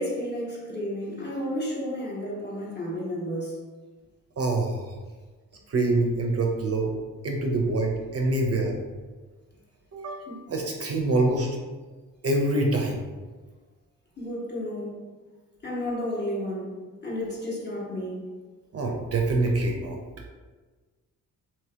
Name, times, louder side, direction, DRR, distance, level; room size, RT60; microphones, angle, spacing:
voice 1, 0.0-3.6 10.3-10.4 14.2-15.0 15.6-16.8 17.0-18.3, equal, 30° left, -5 dB, 1.2 m, -32 dB
voice 2, 4.4-4.9 5.7-6.9 7.2-8.8 9.9-11.5 12.2-13.1 18.7-20.0, right 2 dB, 45° right, 1 dB, 0.5 m, -25 dB
2.9 x 2.8 x 3.3 m, 1.4 s
cardioid pair, 80°, 35 cm